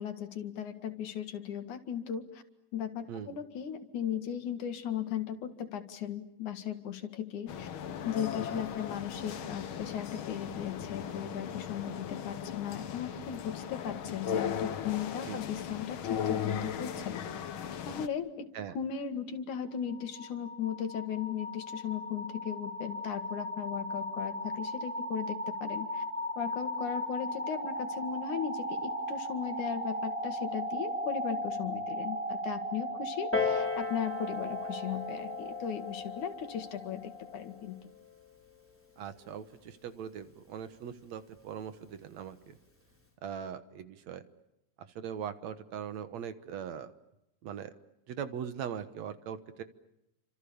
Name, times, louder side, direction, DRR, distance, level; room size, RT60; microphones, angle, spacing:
voice 1, 0.0-2.4 2.7-7.7 8.0-17.2 17.9-26.0 26.4-37.8, left 8 dB, 75° left, 9 dB, 3.4 m, -37 dB
sound 1, 7.5-18.1, left 8 dB, 55° left, 1.6 m, -37 dB
sound 2, 19.7-37.6, equal, 20° right, 2.7 m, -37 dB
Piano, 33.3-38.5 39.3-39.4, left 4 dB, 5° left, 3.4 m, -37 dB
voice 2, 39.0-42.6 43.2-44.2 45.0-46.9 47.4-47.7 48.1-49.6, right 8 dB, 65° right, 12 dB, 2.4 m, -40 dB
30.0 x 26.0 x 7.1 m, 0.87 s
omnidirectional pair, 3.5 m